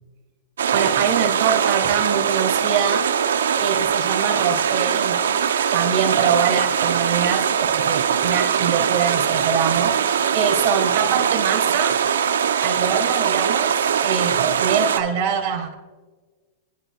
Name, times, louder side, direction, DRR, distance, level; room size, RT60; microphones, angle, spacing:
sound 1, 0.6-15.0, right 8 dB, 90° right, 0.8 m, -21 dB
voice 1, 0.7-3.1 3.6-5.2 5.7-7.5 7.7-12.0 12.6-15.7, right 7 dB, 55° right, 2 dB, 3.3 m, -24 dB
29.5 x 12.5 x 2.5 m, 1.3 s
hypercardioid pair, 115°, 0 cm